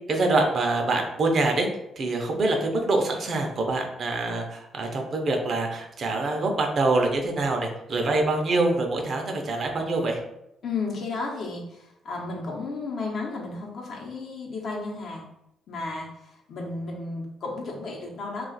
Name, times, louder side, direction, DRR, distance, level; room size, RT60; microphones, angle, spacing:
voice 1, 0.1-1.7 2.0-10.2, right 2 dB, 50° right, 3 dB, 0.6 m, -25 dB
voice 2, 10.6-15.3 15.7-18.5, left 3 dB, 60° left, -1 dB, 0.8 m, -33 dB
2.4 x 2.4 x 3.9 m, 0.84 s
cardioid pair, 90°, 0 cm